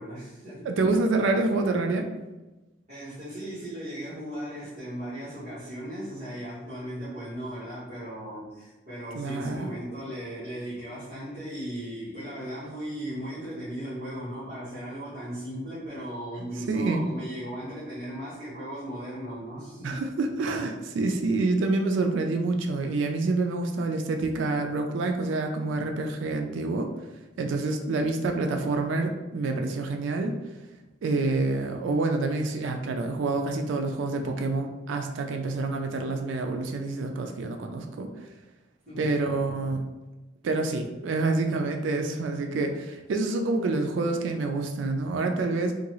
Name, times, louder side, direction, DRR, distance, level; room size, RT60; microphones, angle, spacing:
voice 1, 0.0-0.7 2.9-20.0 38.8-39.2, equal, 40° right, -14 dB, 1.4 m, -37 dB
voice 2, 0.7-2.1 9.1-9.7 16.7-17.0 19.8-26.9 27.4-30.4 31.0-38.1 39.0-39.8 40.4-45.7, right 3 dB, 75° right, 4 dB, 0.3 m, -27 dB
3.7 x 2.3 x 3.0 m, 1.1 s
head